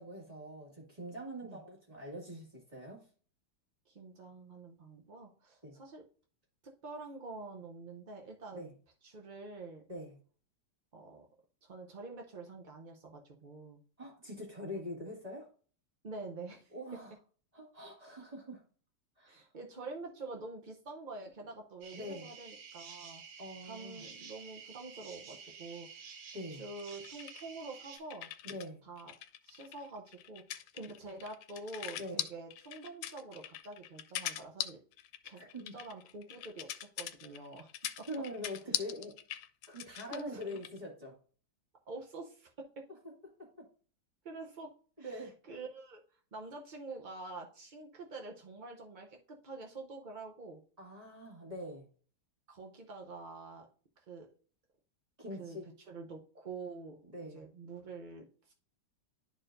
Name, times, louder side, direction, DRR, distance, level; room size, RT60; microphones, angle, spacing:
voice 1, 0.0-3.0 5.6-5.7 8.5-8.7 9.9-10.1 14.0-15.5 16.7-17.1 17.5-18.6 19.2-19.5 21.9-22.3 23.4-24.0 26.3-26.6 28.4-28.8 32.0-32.2 35.3-35.8 38.1-39.2 39.7-41.2 43.4-43.7 45.0-45.4 50.8-51.9 55.2-55.6 57.1-57.4, equal, 20° right, -2 dB, 2.1 m, -44 dB
voice 2, 3.9-6.0 6.8-8.7 9.0-9.8 10.9-11.3 11.6-13.8 16.0-16.7 19.3-23.2 23.6-26.1 26.5-28.3 28.8-29.1 29.4-34.8 35.2-35.4 35.7-37.7 38.0-38.1 38.8-38.9 40.1-40.4 41.9-42.5 44.2-44.7 45.0-46.0 46.3-50.6 52.5-53.7 54.1-54.3 55.4-55.6 55.9-57.0 57.3-58.5, right 3 dB, 60° right, 1 dB, 0.5 m, -46 dB
sound 1, 21.8-28.0, right 6 dB, 75° right, 1.6 m, -51 dB
sound 2, 26.8-28.7 29.0-40.8, left 11 dB, 85° left, 1.3 m, -42 dB
11.5 x 4.4 x 2.6 m, 0.43 s
omnidirectional pair, 1.9 m